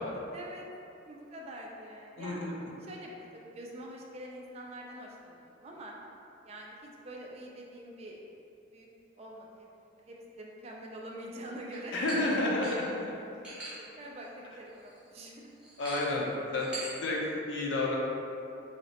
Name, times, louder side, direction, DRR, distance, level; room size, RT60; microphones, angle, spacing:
voice 1, 0.3-0.6 1.1-2.5 2.8-5.9 6.4-8.2 8.7-8.9 9.2-9.7 9.9-12.0 13.7-15.5, right 1 dB, 35° right, -2 dB, 0.3 m, -45 dB
voice 2, 2.2-2.5 11.9-12.9 15.8-16.3 16.5-18.0, left 2 dB, 70° left, -3 dB, 0.6 m, -30 dB
sound 1, 11.7-11.8 12.1-12.3 12.6-12.9 13.4-13.7 14.2-14.3 14.7-15.0 15.6-16.2 16.6-16.9, right 1 dB, 5° right, 0.8 m, -41 dB
3.1 x 2.8 x 2.9 m, 2.7 s
head